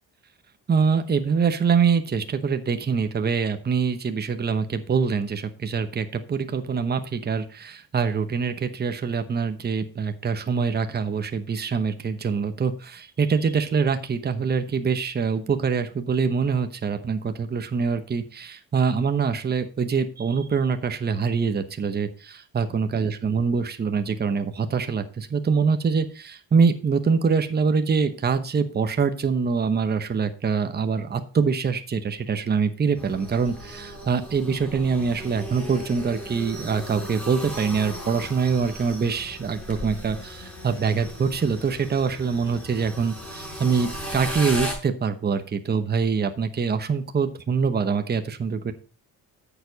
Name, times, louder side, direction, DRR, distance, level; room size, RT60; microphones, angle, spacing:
voice 1, 0.7-48.7, right 5 dB, 30° right, 8 dB, 0.9 m, -24 dB
sound 1, 33.0-44.8, equal, 5° left, 4.9 m, -36 dB
9.4 x 7.1 x 4.0 m, 0.38 s
cardioid pair, 120°, 35 cm